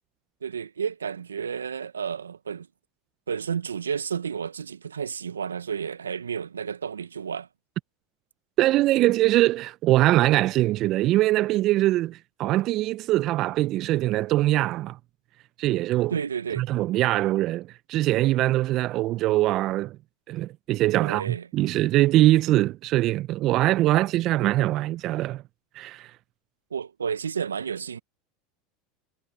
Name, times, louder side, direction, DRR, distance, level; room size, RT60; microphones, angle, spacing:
voice 1, 0.4-2.7 3.3-7.5 16.1-16.7 21.0-21.8 26.7-28.0, right 7 dB, 85° right, 1.4 m, -31 dB
voice 2, 8.6-15.0 15.6-16.1 16.6-20.0 20.3-25.4 25.7-26.1, right 16 dB, 50° right, 0.9 m, -22 dB
hypercardioid pair, 80°, 0 cm